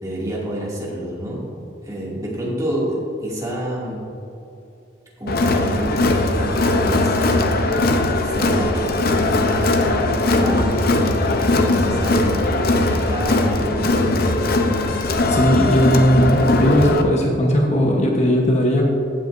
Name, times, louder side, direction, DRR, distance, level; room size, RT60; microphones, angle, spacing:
voice 1, 0.0-1.5 1.8-4.1 5.2-14.1, right 1 dB, 20° right, -6 dB, 2.4 m, -28 dB
Crowd, 5.3-17.0, left 2 dB, 55° left, 0.7 m, -19 dB
voice 2, 15.3-18.9, equal, 35° left, -1 dB, 1.1 m, -17 dB
15.5 x 8.7 x 2.6 m, 2.8 s
head